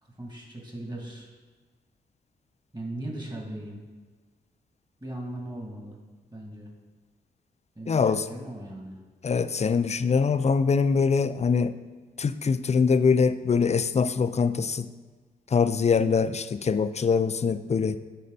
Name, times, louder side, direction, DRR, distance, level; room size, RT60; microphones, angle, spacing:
voice 1, 0.0-1.3 2.7-3.8 5.0-6.0 6.3-6.7 7.7-9.0, right 1 dB, 25° right, -1 dB, 2.5 m, -38 dB
voice 2, 7.9-8.3 9.2-11.7 12.2-14.9 15.5-18.0, left 5 dB, 35° left, 13 dB, 0.5 m, -23 dB
11.0 x 4.2 x 4.1 m, 1.4 s
supercardioid pair, 40°, 19 cm